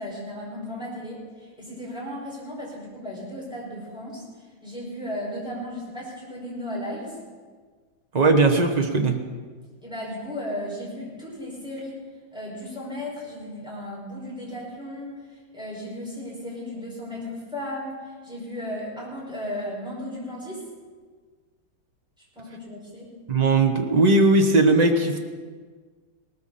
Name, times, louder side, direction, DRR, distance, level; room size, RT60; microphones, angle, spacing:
voice 1, 0.0-7.2 9.8-12.0 12.3-20.7 22.4-23.1, left 1 dB, ahead, -6 dB, 5.3 m, -35 dB
voice 2, 8.1-9.2 23.3-25.2, right 2 dB, 60° right, 4 dB, 0.4 m, -18 dB
18.5 x 14.0 x 4.2 m, 1.5 s
omnidirectional pair, 2.3 m